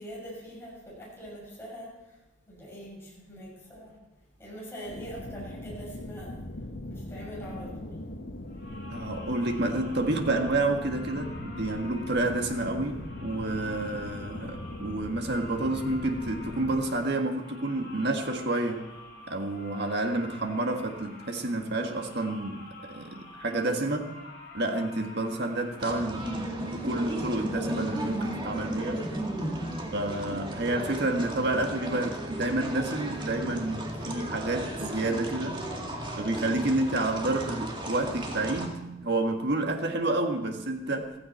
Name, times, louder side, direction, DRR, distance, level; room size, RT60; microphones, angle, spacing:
voice 1, 0.0-1.9 2.5-3.9 4.4-6.3 6.9-8.0 30.5-30.7, equal, 15° left, -5 dB, 6.9 m, -43 dB
sound 1, 4.9-16.9, left 1 dB, 70° left, 1.3 m, -40 dB
sound 2, 8.5-25.9, left 2 dB, 55° left, 3.3 m, -48 dB
voice 2, 8.9-18.9 19.3-24.1 24.5-29.1 29.9-35.7 36.2-41.1, right 2 dB, 60° right, 4 dB, 1.7 m, -29 dB
sound 3, 25.8-38.7, right 1 dB, 25° right, 2.0 m, -35 dB
15.5 x 14.5 x 4.4 m, 1.0 s
head